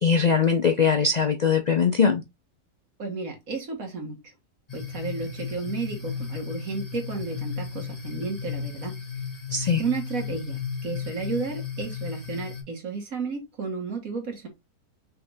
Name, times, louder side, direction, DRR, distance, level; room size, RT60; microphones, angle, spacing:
voice 1, 0.0-2.2 9.5-9.8, left 6 dB, 60° left, 0.4 m, -21 dB
voice 2, 3.0-4.2 4.7-9.0 9.8-14.5, right 4 dB, 65° right, 2.1 m, -32 dB
sound 1, 4.7-12.6, left 7 dB, 25° left, 2.1 m, -34 dB
5.7 x 3.5 x 2.7 m
omnidirectional pair, 1.6 m